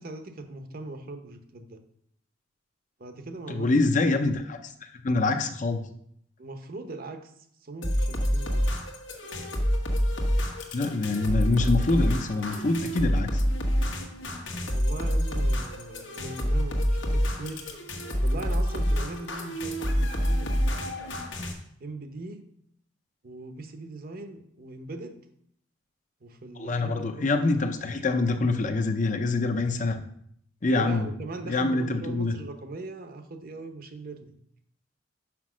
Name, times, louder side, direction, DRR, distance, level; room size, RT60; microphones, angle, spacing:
voice 1, 0.0-1.8 3.0-3.7 6.4-7.3 7.6-8.7 14.7-17.7 18.2-21.0 21.8-22.4 23.2-25.2 26.2-27.2 30.7-34.4, right 2 dB, 50° right, 7 dB, 0.9 m, -40 dB
voice 2, 3.5-4.6 5.0-5.8 10.7-13.4 26.6-30.0 30.6-31.1 31.4-32.3, left 3 dB, 40° left, 6 dB, 0.7 m, -25 dB
sound 1, 7.8-21.5, equal, 80° left, 1.3 m, -27 dB
6.0 x 5.3 x 6.1 m, 0.68 s
head